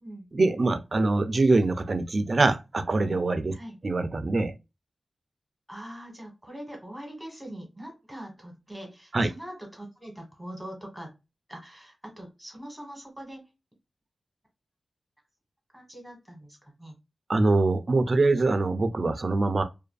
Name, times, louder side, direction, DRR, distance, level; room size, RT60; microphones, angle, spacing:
voice 1, 0.3-3.5 3.8-4.5 9.1-9.3 17.3-19.6, right 3 dB, 50° right, 0.4 m, -24 dB
voice 2, 5.7-11.1 11.5-13.4 15.7-16.9, right 1 dB, 5° right, 1.4 m, -42 dB
2.5 x 2.5 x 2.2 m
wide cardioid pair, 90°, 0 cm